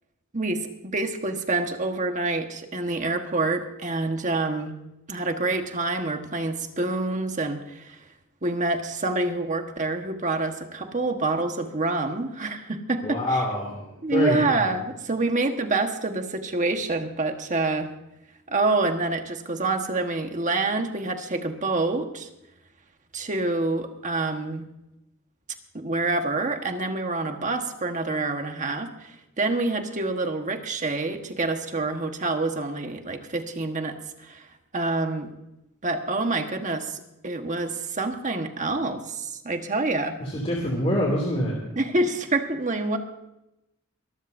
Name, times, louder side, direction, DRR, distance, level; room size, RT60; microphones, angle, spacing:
voice 1, 0.3-4.7 5.1-8.0 8.4-13.4 14.0-17.9 18.5-22.3 23.1-24.7 25.7-34.5 34.7-35.3 35.8-40.2 41.8-43.0, right 2 dB, 35° right, 5 dB, 1.4 m, -27 dB
voice 2, 13.0-13.8 14.1-14.4 40.2-41.7, left 1 dB, 30° left, -2 dB, 2.6 m, -25 dB
24.0 x 14.0 x 2.7 m, 0.89 s
head